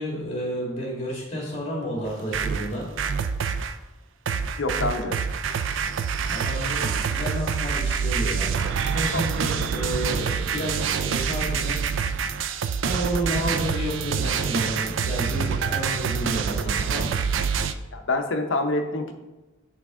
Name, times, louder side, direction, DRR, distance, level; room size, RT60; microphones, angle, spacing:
voice 1, 0.0-2.9 6.3-12.0 12.8-17.2, equal, 30° left, -3 dB, 2.0 m, -31 dB
sound 1, 2.1-3.7 4.3-17.7, right 6 dB, 65° right, 0.4 m, -26 dB
voice 2, 4.6-5.1 9.1-9.2 17.9-19.1, left 2 dB, 70° left, 5 dB, 0.7 m, -26 dB
6.1 x 5.8 x 3.7 m, 1.1 s
head